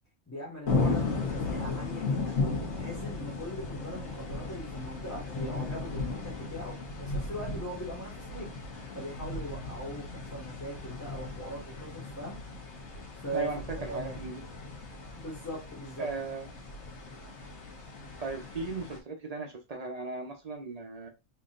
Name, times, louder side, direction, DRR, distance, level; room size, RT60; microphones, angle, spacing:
voice 1, 0.3-1.0 1.3-2.4 2.7-8.5 8.9-12.4 13.2-13.5 13.9-14.2 15.2-16.1, right 1 dB, 15° left, 1.5 m, -40 dB
sound 1, 0.7-19.0, left 3 dB, 80° left, 1.3 m, -36 dB
voice 2, 13.3-14.4 16.0-16.5 18.2-21.1, right 3 dB, 40° right, 0.7 m, -37 dB
3.8 x 3.2 x 2.5 m
omnidirectional pair, 1.2 m